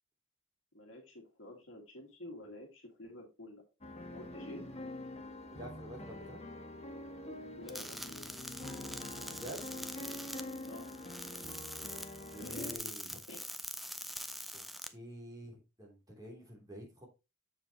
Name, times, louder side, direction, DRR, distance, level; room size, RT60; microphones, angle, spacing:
voice 1, 0.7-3.6 4.1-4.6 7.6-8.3 10.6-10.9 11.5-12.9 13.3-13.4, left 1 dB, 65° left, 1 dB, 2.0 m, -49 dB
sound 1, 3.8-12.8, left 1 dB, 30° left, 1.2 m, -45 dB
voice 2, 5.5-6.4 9.4-9.6 11.9-13.2 14.5-14.6 14.9-17.1, equal, 20° right, -1 dB, 3.1 m, -48 dB
sound 2, 7.7-14.9, equal, ahead, 0.5 m, -44 dB
7.5 x 6.7 x 2.9 m, 0.25 s
head